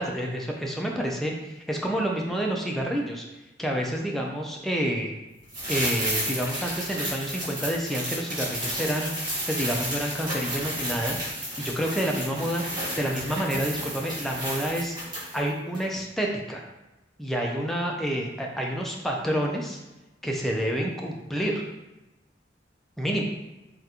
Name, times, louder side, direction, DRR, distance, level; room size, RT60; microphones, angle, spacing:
voice 1, 0.0-3.3 3.6-5.1 5.7-12.6 13.0-15.0 15.3-16.6 17.2-19.8 20.2-21.6 23.0-23.2, equal, ahead, -1 dB, 0.4 m, -28 dB
sound 1, 5.5-15.5 15.7-15.8, equal, 25° right, 1.2 m, -32 dB
3.5 x 2.4 x 2.8 m, 1.0 s
head